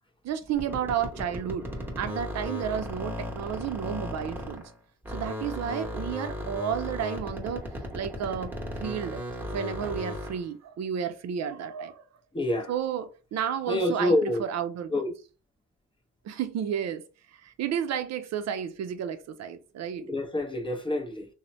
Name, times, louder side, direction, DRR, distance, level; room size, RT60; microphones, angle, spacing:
voice 1, 0.2-1.7 2.0-4.6 5.1-12.0 12.7-15.0 16.2-17.0 17.3-20.1, right 8 dB, 60° right, 0.5 m, -32 dB
sound 1, 0.5-4.8 5.0-10.5, equal, 5° right, 0.9 m, -36 dB
voice 2, 12.3-12.7 13.7-14.4 14.9-15.1 20.0-21.3, left 1 dB, 15° left, 0.6 m, -27 dB
3.0 x 2.1 x 2.5 m
cardioid pair, 90°, 30 cm